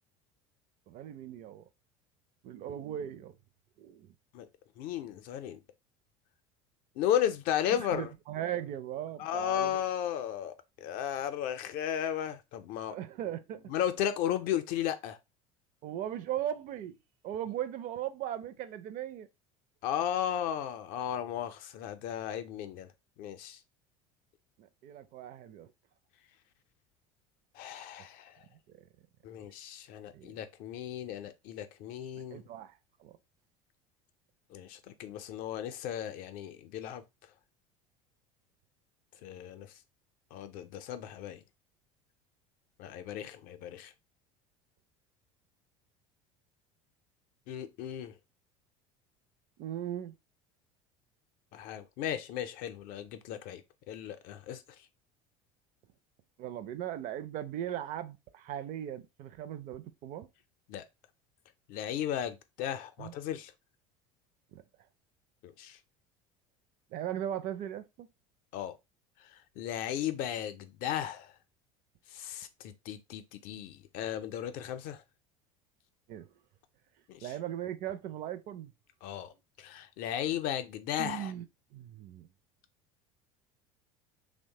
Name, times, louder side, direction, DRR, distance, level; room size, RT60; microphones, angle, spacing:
voice 1, 0.9-1.7 2.4-3.4 3.8-4.1 7.7-9.8 12.9-13.7 15.8-16.9 17.2-19.3 24.6-25.7 28.7-28.9 30.1-30.4 32.1-33.2 49.6-50.1 56.4-60.3 63.0-63.1 64.5-64.6 66.9-68.1 76.1-76.3 77.2-78.7 81.0-81.5 81.7-82.3, right 11 dB, 50° right, 0.4 m, -38 dB
voice 2, 4.8-5.6 7.0-8.1 9.2-10.5 10.8-13.0 13.7-15.2 19.8-22.9 23.2-23.6 27.5-28.4 29.2-32.4 34.5-37.0 39.2-39.7 40.3-41.4 42.8-43.9 47.5-48.1 51.5-53.6 53.9-54.6 60.7-60.8 61.7-63.5 65.4-65.8 68.5-68.8 69.6-71.3 72.1-75.0 77.1-77.3 79.0-79.3 79.6-81.3, left 10 dB, 55° left, 0.5 m, -35 dB
3.0 x 2.1 x 2.8 m
hypercardioid pair, 75°, 17 cm